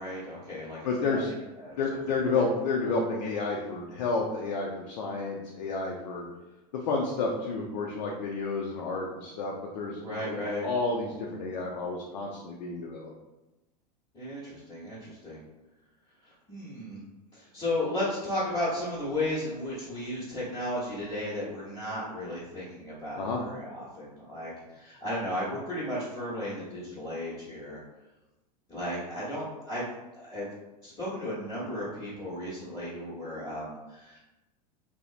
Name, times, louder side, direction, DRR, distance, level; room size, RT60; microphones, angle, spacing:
voice 1, 0.0-0.8 1.1-1.8 10.0-10.7 14.1-15.4 16.2-17.0 17.3-27.8 28.7-29.8 30.2-30.5 30.8-34.2, left 1 dB, 25° left, -10 dB, 0.9 m, -34 dB
voice 2, 0.8-1.3 1.8-6.3 6.9-13.1 23.2-23.4, left 3 dB, 80° left, -1 dB, 0.5 m, -30 dB
2.9 x 2.0 x 2.4 m, 1.0 s
hypercardioid pair, 105°, 21 cm